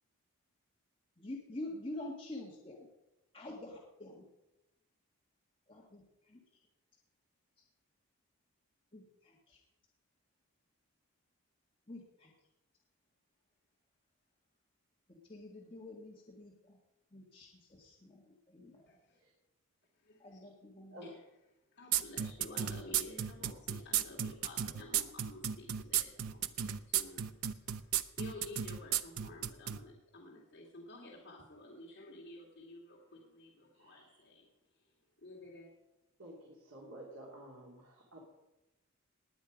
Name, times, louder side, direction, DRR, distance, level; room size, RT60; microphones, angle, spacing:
voice 1, 1.2-2.9 3.3-4.2 5.7-6.4 8.9-9.6 11.9-12.3 15.1-16.8 17.1-18.9 20.2-21.0, left 1 dB, 25° left, -3 dB, 1.7 m, -47 dB
voice 2, 18.9-19.2 20.0-20.4 21.0-21.1 21.7-34.5 35.2-35.7, left 2 dB, 55° left, -4 dB, 2.4 m, -52 dB
sound 1, 21.9-29.8, right 10 dB, 85° right, 0.7 m, -33 dB
voice 3, 33.8-34.2 36.2-38.2, right 1 dB, 65° right, -3 dB, 2.9 m, -52 dB
19.5 x 8.7 x 5.1 m, 0.95 s
head